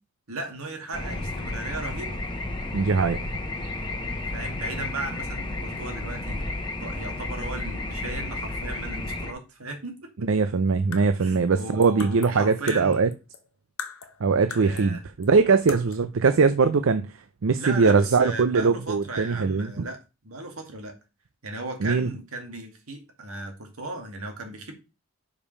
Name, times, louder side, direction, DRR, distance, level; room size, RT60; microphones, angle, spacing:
voice 1, 0.3-2.2 4.3-6.5 6.8-10.1 11.2-13.0 14.5-15.0 17.5-20.0 20.2-20.9 21.4-24.7, right 2 dB, 90° right, 2.0 m, -36 dB
sound 1, 0.9-9.3, left 2 dB, 20° left, 1.1 m, -32 dB
voice 2, 2.7-3.2 10.2-13.1 14.2-17.0 17.4-19.7 21.8-22.1, right 4 dB, 70° right, 0.5 m, -21 dB
sound 2, 10.7-13.5 13.8-15.0 15.2-15.3 15.7-16.1, left 7 dB, 80° left, 1.1 m, -40 dB
5.1 x 5.1 x 5.4 m
head